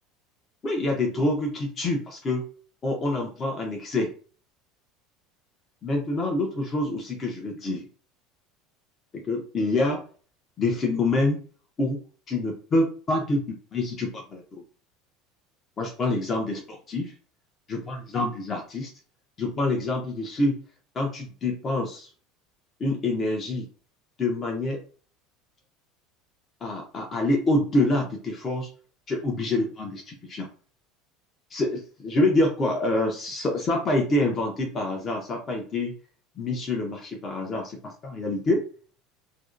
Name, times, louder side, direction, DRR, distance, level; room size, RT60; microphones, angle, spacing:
voice 1, 0.6-2.4 2.8-4.1 5.8-7.9 9.1-10.0 10.6-11.4 11.8-12.0 12.3-13.4 13.7-14.4 15.8-17.1 17.7-18.9 19.4-20.6 20.9-22.1 22.8-23.7 24.2-24.8 26.6-28.7 29.1-30.5 31.5-35.9 36.4-38.6, left 2 dB, 35° left, 0 dB, 0.6 m, -26 dB
2.6 x 2.1 x 2.4 m, 0.41 s
hypercardioid pair, 90°, 0 cm